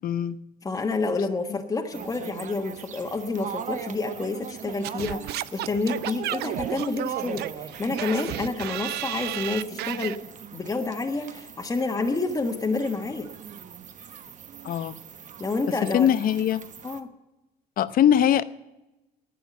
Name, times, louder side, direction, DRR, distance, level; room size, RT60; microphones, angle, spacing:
voice 1, 0.0-0.4 14.6-14.9 15.9-16.6 17.8-18.4, left 10 dB, 60° left, 15 dB, 0.8 m, -21 dB
voice 2, 0.6-10.2 10.5-13.3 15.4-16.1 16.8-17.1, left 3 dB, 20° left, 3 dB, 1.4 m, -29 dB
sound 1, 1.9-17.0, right 7 dB, 45° right, 1.1 m, -40 dB
Singing / Scratching (performance technique), 4.8-10.2, right 14 dB, 75° right, 0.5 m, -32 dB
11.0 x 9.2 x 9.2 m, 0.98 s
cardioid pair, 110°, 17 cm